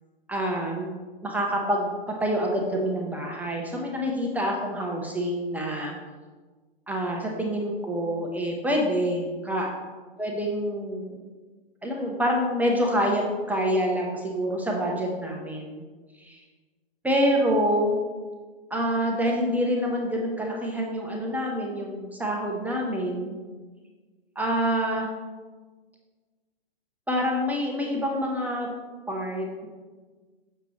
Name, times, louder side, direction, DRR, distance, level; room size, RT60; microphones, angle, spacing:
voice 1, 0.3-0.9 1.2-6.0 6.9-9.7 10.2-11.2 11.8-15.8 16.2-16.4 17.0-18.0 18.7-23.4 24.4-25.1 27.1-28.7 29.1-29.7, equal, 5° right, -1 dB, 0.7 m, -27 dB
6.7 x 6.6 x 3.1 m, 1.4 s
hypercardioid pair, 120°, 32 cm